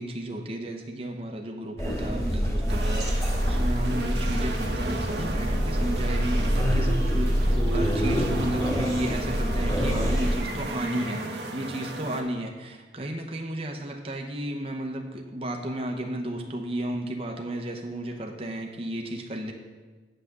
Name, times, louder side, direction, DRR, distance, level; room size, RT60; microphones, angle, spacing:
voice 1, 0.0-19.5, right 1 dB, 35° right, 2 dB, 0.9 m, -33 dB
sound 1, 1.8-10.4, equal, 20° left, 3.4 m, -26 dB
sound 2, 2.7-12.2, right 2 dB, 75° right, 1.2 m, -35 dB
9.0 x 5.8 x 6.6 m, 1.4 s
head